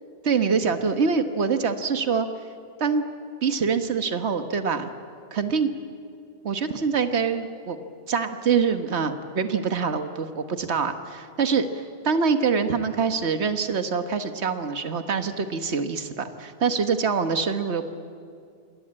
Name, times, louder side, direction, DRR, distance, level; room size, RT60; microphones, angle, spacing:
voice 1, 0.2-2.3 2.8-3.0 3.4-4.9 5.3-5.7 6.4-7.8 8.1-17.8, right 5 dB, 75° right, 8 dB, 1.6 m, -25 dB
27.5 x 21.0 x 8.9 m, 2.4 s
omnidirectional pair, 1.1 m